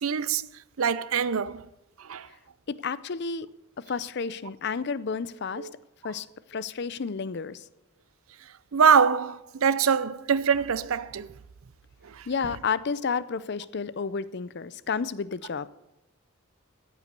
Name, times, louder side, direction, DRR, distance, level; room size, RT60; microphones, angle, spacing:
voice 1, 0.0-0.5 0.8-1.6 2.0-2.3 5.6-5.7 8.7-11.3 12.0-12.3, right 6 dB, 85° right, 0.6 m, -24 dB
voice 2, 2.7-3.5 3.8-5.7 6.0-7.6 12.3-15.7, left 5 dB, 55° left, 0.5 m, -31 dB
14.5 x 8.2 x 6.8 m
head